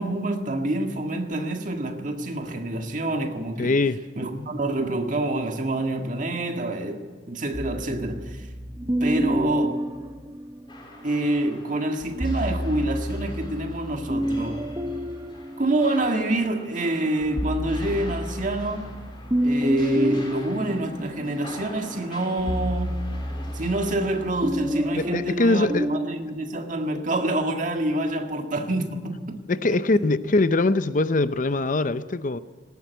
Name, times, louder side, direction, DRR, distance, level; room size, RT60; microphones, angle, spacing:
voice 1, 0.0-3.8 4.2-8.5 9.0-9.8 11.0-14.7 15.6-19.0 19.4-23.0 23.5-30.1, right 1 dB, 45° right, 1.9 m, -27 dB
voice 2, 3.6-4.0 25.0-25.9 29.5-32.4, left 2 dB, 45° left, 0.6 m, -22 dB
sound 1, 7.5-11.0 12.0-16.4 16.9-26.1, equal, 20° right, 0.9 m, -30 dB
sound 2, 10.7-25.2, left 2 dB, 25° left, 4.1 m, -46 dB
19.0 x 17.5 x 9.3 m
head